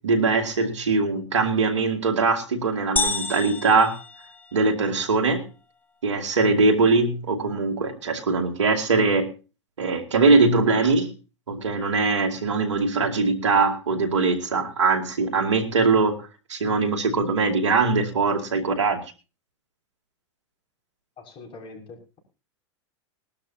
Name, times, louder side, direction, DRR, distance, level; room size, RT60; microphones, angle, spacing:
voice 1, 0.0-4.0 4.5-5.4 6.0-9.3 9.8-11.1 11.5-16.1 16.5-19.0, right 4 dB, 90° right, 5 dB, 2.5 m, -21 dB
sound 1, 3.0-4.9, left 3 dB, 15° left, 1.4 m, -29 dB
voice 2, 21.2-22.2, left 3 dB, 35° left, 1 dB, 6.4 m, -43 dB
20.5 x 12.5 x 2.8 m, 0.33 s
hypercardioid pair, 105°, 15 cm